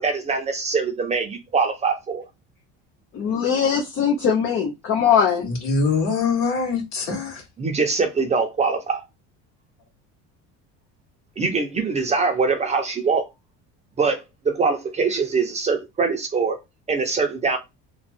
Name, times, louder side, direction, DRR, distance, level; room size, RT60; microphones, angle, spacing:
voice 1, 0.0-2.2 7.6-9.0 11.4-13.3 14.0-16.6 16.9-17.6, right 4 dB, 20° right, 0.7 m, -23 dB
voice 2, 3.1-5.5, left 7 dB, 45° left, 0.9 m, -21 dB
voice 3, 5.4-7.4, left 4 dB, 65° left, 1.7 m, -23 dB
3.1 x 2.4 x 4.3 m
cardioid pair, 140°, 31 cm